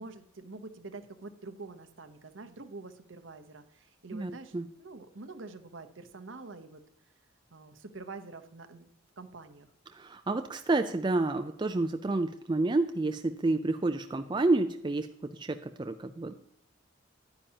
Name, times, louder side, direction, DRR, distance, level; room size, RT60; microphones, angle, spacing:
voice 1, 0.0-6.8 7.5-8.9 9.2-9.7, right 3 dB, 65° right, 9 dB, 0.9 m, -46 dB
voice 2, 4.1-4.7 9.9-16.3, right 2 dB, 20° right, 7 dB, 0.4 m, -29 dB
9.9 x 9.9 x 2.8 m, 0.74 s
head